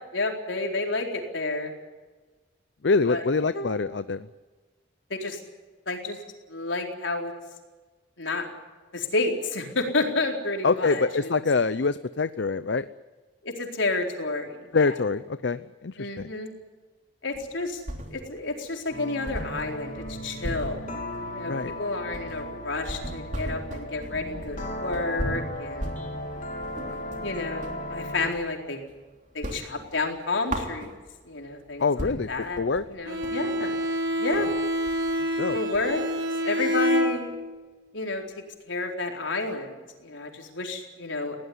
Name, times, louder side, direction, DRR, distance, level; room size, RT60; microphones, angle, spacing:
voice 1, 0.1-1.7 3.1-3.7 5.1-5.4 5.9-6.2 6.5-7.3 8.2-8.5 8.9-11.3 13.4-14.9 16.0-16.5 17.2-17.8 18.1-20.8 21.2-21.5 21.8-25.9 27.2-28.8 29.3-30.9 31.2-32.6 32.9-33.7 34.2-34.5 35.5-36.0 36.4-37.4 37.9-41.4, left 3 dB, 80° left, 2 dB, 4.3 m, -30 dB
voice 2, 2.8-4.3 10.6-12.9 14.7-16.3 21.5-21.7 26.8-27.0 31.8-32.3 32.6-32.8 35.4-35.6, left 4 dB, 65° left, 14 dB, 0.6 m, -25 dB
sound 1, 17.3-18.5 18.8-18.9 19.2-27.8 28.2-29.0 29.3-31.3 31.7-31.8 32.0-36.1, right 1 dB, 40° right, 3.3 m, -37 dB
sound 2, 18.9-28.4, left 1 dB, 40° left, 2.8 m, -37 dB
Bowed string instrument, 33.1-37.7, equal, 85° right, 4.5 m, -27 dB
20.5 x 17.5 x 9.7 m, 1.3 s
head